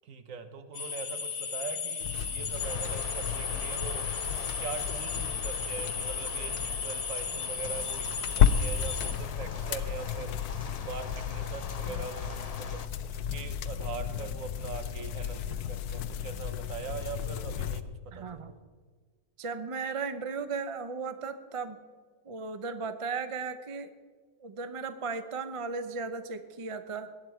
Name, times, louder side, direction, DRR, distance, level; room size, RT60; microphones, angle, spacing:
voice 1, 0.0-4.1 4.6-10.4 10.8-18.5, right 5 dB, 60° right, 9 dB, 1.3 m, -42 dB
sound 1, 0.7-9.1, left 6 dB, 70° left, 1.9 m, -35 dB
sound 2, 2.0-17.8, left 9 dB, 85° left, 1.2 m, -33 dB
sound 3, 2.6-12.9, left 5 dB, 50° left, 0.4 m, -44 dB
voice 2, 18.1-18.5 19.4-21.8 22.2-23.9 24.4-27.1, right 4 dB, 35° right, 10 dB, 0.5 m, -36 dB
18.5 x 11.0 x 4.5 m, 1.5 s
omnidirectional pair, 1.6 m